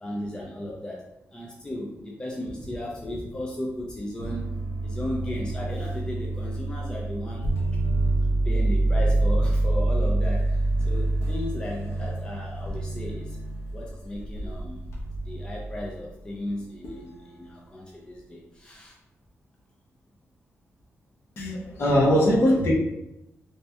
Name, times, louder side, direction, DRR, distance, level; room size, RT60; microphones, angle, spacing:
voice 1, 0.0-1.1 1.3-7.5 8.4-10.6 10.8-13.4 13.7-14.8 15.3-18.9, left 1 dB, 15° left, -2 dB, 0.5 m, -35 dB
sound 1, 4.2-16.0 16.8-17.2, right 2 dB, 85° left, 0.9 m, -26 dB
voice 2, 21.4-22.7, equal, 55° left, -5 dB, 1.1 m, -21 dB
3.2 x 2.8 x 3.3 m, 0.88 s
wide cardioid pair, 150°, 5 cm